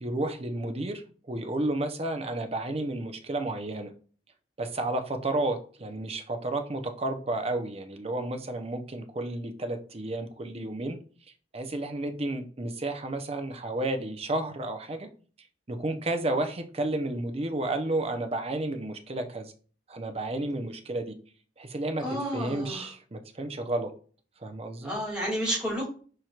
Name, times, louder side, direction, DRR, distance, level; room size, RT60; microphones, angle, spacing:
voice 1, 0.0-3.9 4.6-11.0 11.5-15.1 15.7-19.5 19.9-21.2 21.6-22.0 22.3-23.9 24.4-24.9, right 2 dB, 35° right, 7 dB, 0.7 m, -32 dB
voice 2, 22.0-22.9 24.8-25.9, equal, 5° right, -5 dB, 2.5 m, -31 dB
4.8 x 4.4 x 2.4 m, 0.40 s
head